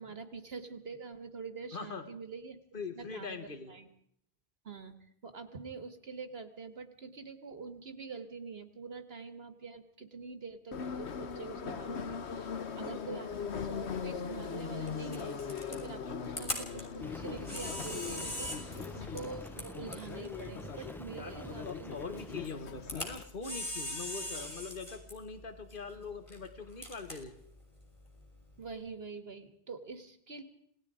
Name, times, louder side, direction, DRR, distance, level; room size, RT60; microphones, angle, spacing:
voice 1, 0.0-2.6 3.0-3.9 4.6-4.9 5.2-22.0 28.6-30.4, right 4 dB, 70° right, 9 dB, 2.0 m, -45 dB
voice 2, 1.7-2.1 2.7-3.8 21.1-27.3, left 4 dB, 50° left, 8 dB, 2.0 m, -42 dB
Subway metro underground, 10.7-23.2, left 6 dB, 85° left, 1.4 m, -40 dB
Camera, 13.3-28.7, left 1 dB, 30° left, 5.4 m, -44 dB
Rain, 17.0-22.5, equal, ahead, 0.8 m, -48 dB
27.0 x 19.0 x 5.0 m, 0.68 s
omnidirectional pair, 1.1 m